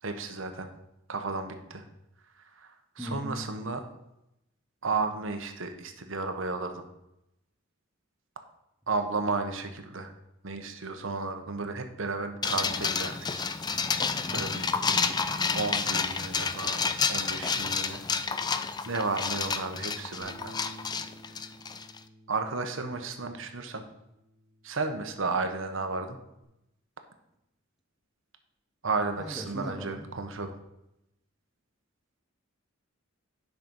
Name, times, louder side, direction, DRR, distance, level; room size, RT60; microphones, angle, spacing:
voice 1, 0.0-0.7 1.1-1.8 2.4-3.8 4.8-6.8 8.9-10.1 10.4-13.5 14.3-14.6 15.5-18.0 18.9-20.6 22.3-23.8 24.6-26.2 28.8-30.5, right 3 dB, 65° right, 6 dB, 1.1 m, -33 dB
voice 2, 3.0-3.4 14.3-15.2 29.2-30.1, equal, ahead, 0 dB, 1.2 m, -39 dB
sound 1, 12.4-22.0, left 5 dB, 20° left, 0.4 m, -30 dB
Bass guitar, 20.2-26.4, right 1 dB, 60° left, 4.2 m, -54 dB
10.5 x 5.9 x 5.5 m, 0.85 s
head